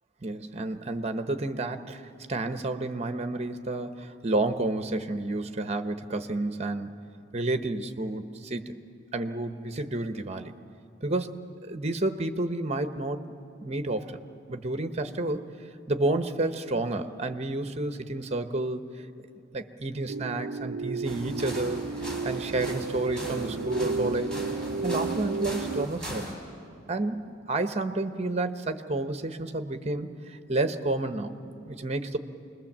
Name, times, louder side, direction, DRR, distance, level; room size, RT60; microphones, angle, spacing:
voice 1, 0.2-2.0 2.3-6.9 7.3-8.8 9.1-10.5 11.0-13.2 13.6-14.2 14.5-15.5 15.9-19.1 19.5-21.9 22.2-24.4 24.8-26.3 26.9-32.2, right 2 dB, 35° right, 9 dB, 1.0 m, -30 dB
sound 1, 20.1-25.9, right 4 dB, 80° right, 0.5 m, -33 dB
sound 2, 21.0-26.3, equal, 5° left, 4.0 m, -39 dB
26.5 x 21.0 x 7.4 m, 2.6 s
head